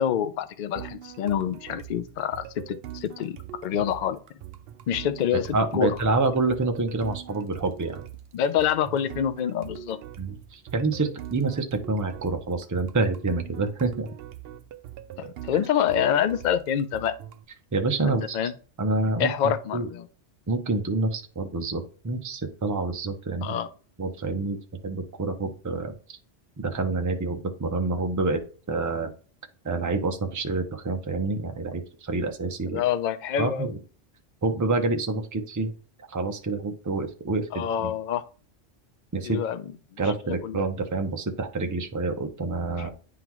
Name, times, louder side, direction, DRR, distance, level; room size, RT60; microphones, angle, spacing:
voice 1, 0.0-3.4 3.6-4.2 4.9-5.5 5.7-5.9 8.3-10.0 15.2-17.1 18.0-18.5 19.2-20.1 23.4-23.7 32.7-33.7 37.5-38.2 39.2-39.6 39.9-40.6, left 9 dB, 60° left, 0.5 m, -26 dB
sound 1, 0.8-17.4, right 11 dB, 65° right, 0.7 m, -42 dB
voice 2, 5.3-8.0 10.2-14.1 15.5-15.6 17.7-18.5 18.8-19.9 20.5-23.5 24.0-24.6 24.8-26.2 26.6-28.4 28.7-29.1 29.6-32.8 33.4-33.8 34.4-35.7 36.1-37.9 39.1-39.4 40.0-42.9, right 3 dB, 25° right, 0.4 m, -27 dB
9.4 x 3.8 x 3.0 m
omnidirectional pair, 1.2 m